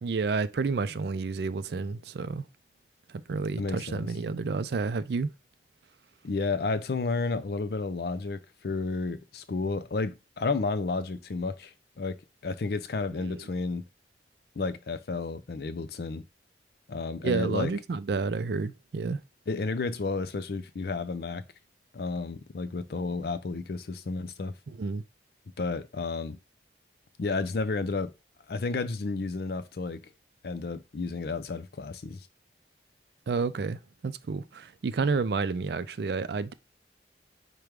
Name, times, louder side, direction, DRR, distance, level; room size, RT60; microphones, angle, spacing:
voice 1, 0.0-2.4 3.1-5.3 13.2-13.5 17.2-19.2 24.7-25.0 33.3-36.5, right 4 dB, 65° right, 0.4 m, -30 dB
voice 2, 3.5-4.1 6.2-13.9 14.6-16.3 16.9-17.7 19.5-21.4 21.9-24.5 25.6-26.4 27.2-28.1 28.5-30.0 30.4-32.3, left 3 dB, 55° left, 0.5 m, -32 dB
5.1 x 2.2 x 4.6 m
head